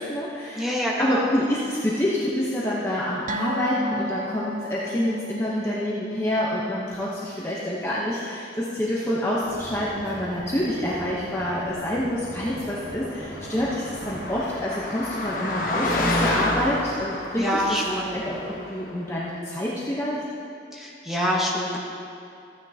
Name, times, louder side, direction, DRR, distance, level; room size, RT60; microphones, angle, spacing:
voice 1, 0.0-0.7 1.0-17.6 18.1-20.2, left 1 dB, 15° left, -7 dB, 0.9 m, -27 dB
voice 2, 0.5-1.3 17.4-18.1 20.7-21.8, equal, ahead, -4 dB, 1.3 m, -26 dB
sound 1, 3.3-10.1 10.4-10.6 11.0-11.1, right 1 dB, 45° right, 0.6 m, -36 dB
sound 2, 9.4-14.5, equal, 75° right, 1.2 m, -39 dB
Car passing by, 12.9-18.9, left 1 dB, 50° left, 1.2 m, -29 dB
14.5 x 9.6 x 2.8 m, 2.6 s
head